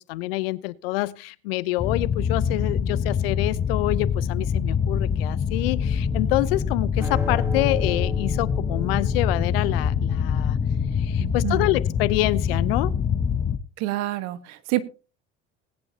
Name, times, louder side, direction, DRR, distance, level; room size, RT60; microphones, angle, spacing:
voice 1, 0.0-10.6 10.9-12.9, left 19 dB, 80° left, 0.7 m, -27 dB
sound 1, 1.8-13.6, left 7 dB, 30° left, 1.1 m, -25 dB
sound 2, 5.8-10.9, equal, 10° right, 2.4 m, -35 dB
voice 2, 11.2-11.7 13.8-14.8, right 16 dB, 70° right, 1.4 m, -28 dB
19.5 x 10.0 x 2.8 m
hypercardioid pair, 75°, 29 cm